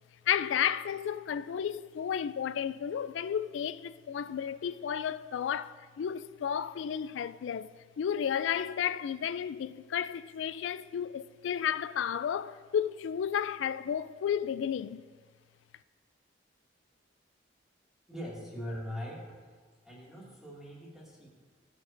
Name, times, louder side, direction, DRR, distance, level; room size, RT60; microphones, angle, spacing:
voice 1, 0.3-15.0, left 8 dB, 80° left, 0.3 m, -32 dB
voice 2, 18.1-19.6 19.8-21.3, equal, 5° right, 2.2 m, -41 dB
19.0 x 6.3 x 2.6 m
head